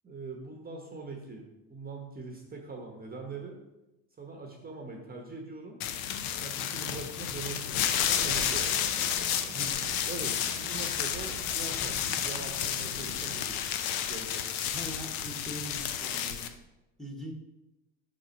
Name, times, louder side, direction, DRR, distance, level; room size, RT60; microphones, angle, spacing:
voice 1, 0.0-1.4 1.7-3.6 4.2-5.8 6.4-8.8 10.1-13.6 14.1-14.4, right 4 dB, 20° right, 2 dB, 1.0 m, -42 dB
sound 1, 5.8-16.5, left 9 dB, 60° left, 0.7 m, -31 dB
Race car auto racing, 7.9-13.5, right 7 dB, 80° right, 0.7 m, -45 dB
voice 2, 14.7-16.5 17.0-17.3, equal, ahead, 2 dB, 1.1 m, -41 dB
4.8 x 4.2 x 5.2 m, 0.97 s
supercardioid pair, 85°, 40 cm